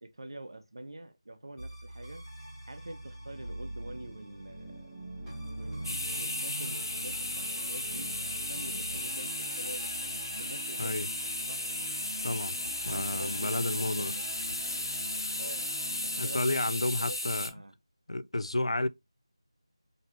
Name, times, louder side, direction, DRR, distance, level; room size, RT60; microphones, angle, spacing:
voice 1, 0.0-2.2 2.7-4.9 5.5-11.1 11.5-11.7 12.9-14.3 15.4-17.8, right 1 dB, 50° right, 0.6 m, -46 dB
sound 1, 1.6-16.3, right 1 dB, ahead, 0.6 m, -43 dB
sound 2, 5.8-17.5, left 2 dB, 45° left, 0.8 m, -35 dB
voice 2, 12.2-12.6 12.8-14.1 16.2-17.5 18.1-18.9, left 2 dB, 85° left, 0.4 m, -31 dB
4.0 x 2.8 x 3.0 m
figure-of-eight pair, 180°, 3 cm